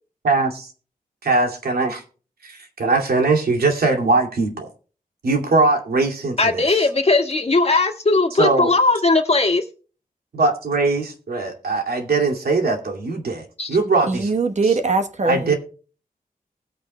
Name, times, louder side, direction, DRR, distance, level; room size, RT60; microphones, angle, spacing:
voice 1, 0.2-0.7 1.2-2.0 2.4-4.7 5.2-6.8 8.3-8.7 10.3-14.3 15.2-15.5, right 3 dB, 80° right, 2.4 m, -21 dB
voice 2, 6.4-9.6 13.6-13.8, left 3 dB, 40° left, 1.7 m, -18 dB
voice 3, 14.1-15.5, right 3 dB, 50° right, 1.1 m, -21 dB
19.5 x 8.7 x 2.2 m
wide cardioid pair, 85°, 15 cm